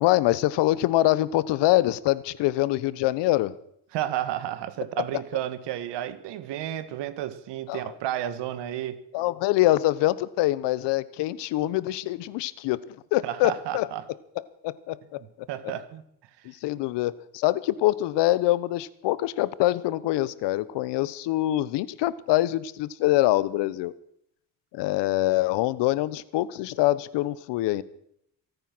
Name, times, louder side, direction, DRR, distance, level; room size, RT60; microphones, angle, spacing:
voice 1, 0.0-3.5 7.7-7.8 9.1-13.9 14.6-15.2 16.4-23.9 24.7-27.8, left 16 dB, 75° left, 19 dB, 0.9 m, -24 dB
voice 2, 3.9-9.0 13.2-14.0 15.5-16.0 16.4-16.5, right 12 dB, 75° right, 13 dB, 1.7 m, -32 dB
24.0 x 9.2 x 6.1 m, 0.72 s
supercardioid pair, 85°, 42 cm